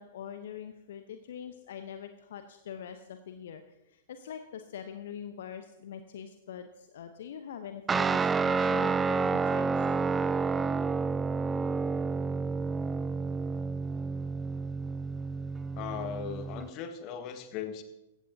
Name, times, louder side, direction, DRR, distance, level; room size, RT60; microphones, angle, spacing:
voice 1, 0.0-9.8, left 8 dB, 60° left, 8 dB, 0.8 m, -44 dB
Guitar, 7.9-16.7, right 4 dB, 15° right, 0.4 m, -30 dB
voice 2, 15.8-17.8, left 8 dB, 35° left, 8 dB, 1.5 m, -38 dB
16.0 x 14.5 x 2.8 m, 0.95 s
figure-of-eight pair, 105°, 0 cm